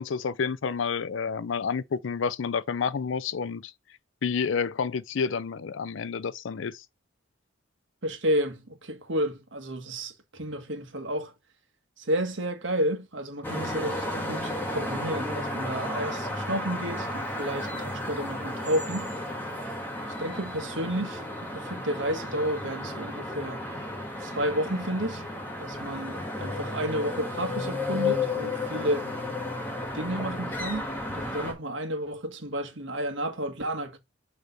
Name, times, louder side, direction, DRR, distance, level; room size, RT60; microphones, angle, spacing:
voice 1, 0.0-3.7 4.2-6.8, left 6 dB, 70° left, 0.5 m, -29 dB
voice 2, 8.0-11.3 12.0-19.1 20.2-23.7 24.2-25.2 25.6-29.1 29.9-34.0, equal, 70° right, 1.5 m, -31 dB
sound 1, 13.4-31.5, left 2 dB, 10° left, 1.7 m, -33 dB
6.6 x 3.3 x 5.2 m
head